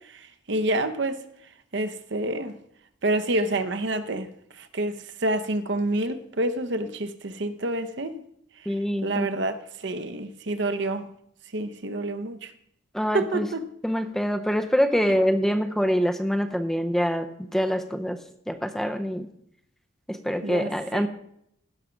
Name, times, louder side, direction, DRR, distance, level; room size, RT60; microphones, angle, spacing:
voice 1, 0.1-1.2 1.7-2.6 3.0-4.3 4.6-8.2 9.0-11.1 11.5-12.5 13.1-13.6 20.4-21.1, right 2 dB, 60° right, 0.8 m, -28 dB
voice 2, 8.7-9.3 12.9-13.5 13.8-18.2 18.5-19.3 20.1-21.1, equal, ahead, 0.6 m, -25 dB
16.0 x 5.8 x 5.1 m
head